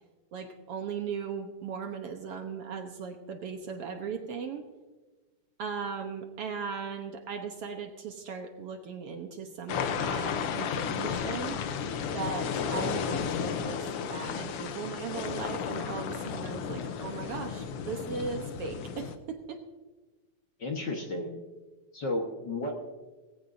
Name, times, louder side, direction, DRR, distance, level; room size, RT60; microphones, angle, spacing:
voice 1, 0.3-4.6 5.6-11.6 12.1-19.6, right 6 dB, 65° right, 5 dB, 1.7 m, -38 dB
sound 1, 9.7-19.2, left 7 dB, 70° left, 1.5 m, -33 dB
voice 2, 20.6-21.4 21.9-22.8, left 2 dB, 45° left, 1 dB, 1.6 m, -33 dB
19.0 x 16.5 x 2.7 m, 1.2 s
omnidirectional pair, 3.3 m